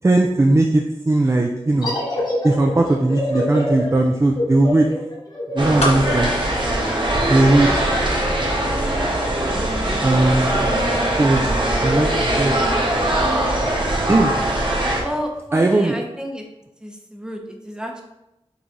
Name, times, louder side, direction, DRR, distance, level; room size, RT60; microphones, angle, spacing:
voice 1, 0.0-2.0 2.4-4.9 5.5-6.3 7.3-7.7 10.0-10.5 11.2-11.4 11.8-12.6 14.1-14.3 15.5-16.0, right 2 dB, 25° right, 2 dB, 0.4 m, -18 dB
sound 1, 1.8-7.1, left 1 dB, 45° left, 1.2 m, -26 dB
sound 2, 5.6-15.0, right 1 dB, 50° right, 1.0 m, -21 dB
sound 3, 5.8-7.8 8.1-8.2, left 1 dB, 85° left, 0.7 m, -27 dB
voice 2, 15.0-16.4 16.8-18.0, equal, 5° right, 2 dB, 0.8 m, -31 dB
6.0 x 3.2 x 2.6 m, 0.91 s
wide cardioid pair, 65°, 10 cm